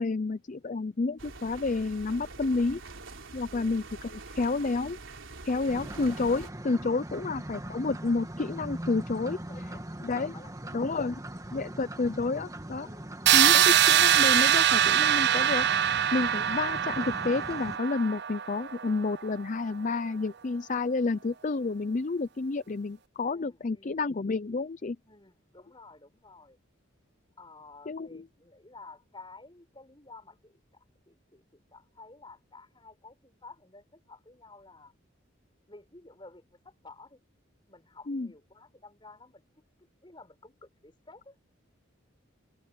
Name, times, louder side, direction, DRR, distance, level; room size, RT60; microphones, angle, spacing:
voice 1, 0.0-2.8 3.3-3.8 4.1-5.0 5.4-9.4 10.0-10.3 10.7-11.1 11.5-12.9 13.3-25.0 27.9-28.2 38.1-38.3, left 3 dB, 40° left, 0.5 m, -30 dB
sound 1, 1.2-6.5, right 3 dB, 80° right, 3.7 m, -45 dB
voice 2, 3.5-3.8 5.5-6.0 7.1-7.5 9.5-10.9 11.5-11.8 12.8-13.7 16.3-16.6 23.2-24.1 25.0-26.6 27.4-34.9 35.7-37.2 37.7-39.4 39.8-41.4, left 3 dB, 25° left, 6.6 m, -53 dB
sound 2, 5.7-17.8, right 1 dB, 15° right, 1.7 m, -41 dB
sound 3, 13.3-19.1, right 10 dB, 60° right, 0.5 m, -23 dB
head